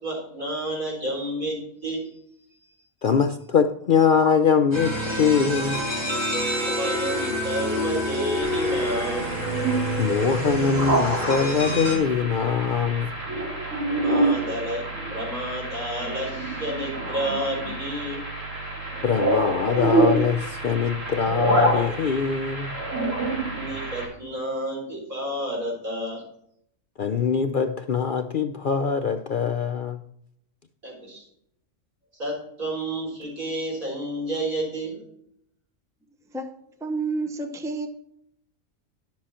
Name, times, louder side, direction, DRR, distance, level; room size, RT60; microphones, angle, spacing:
voice 1, 0.0-2.2 6.5-9.3 14.0-14.8 15.1-18.2 23.5-26.2 30.8-31.2 32.2-35.0, right 1 dB, 85° right, -4 dB, 5.2 m, -30 dB
voice 2, 3.0-5.9 10.0-13.1 19.0-22.7 27.0-30.0, left 6 dB, 55° left, 7 dB, 0.6 m, -23 dB
sound 1, 4.7-12.0, equal, 20° right, 2.3 m, -28 dB
sound 2, 8.4-24.1, right 2 dB, 65° right, 3.2 m, -27 dB
voice 3, 36.8-37.9, right 3 dB, 5° right, 6 dB, 0.8 m, -29 dB
11.0 x 7.5 x 4.3 m, 0.72 s
omnidirectional pair, 1.4 m